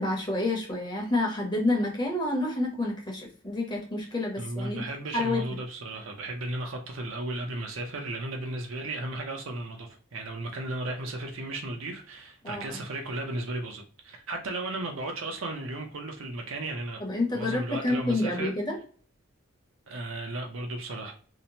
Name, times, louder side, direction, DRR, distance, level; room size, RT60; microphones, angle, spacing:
voice 1, 0.0-4.8 5.1-5.4 12.4-12.8 17.0-18.8, left 2 dB, 20° left, 0.8 m, -28 dB
voice 2, 4.4-17.0 17.3-18.6 19.9-21.1, right 2 dB, 75° right, 0.6 m, -35 dB
2.8 x 2.1 x 2.8 m
head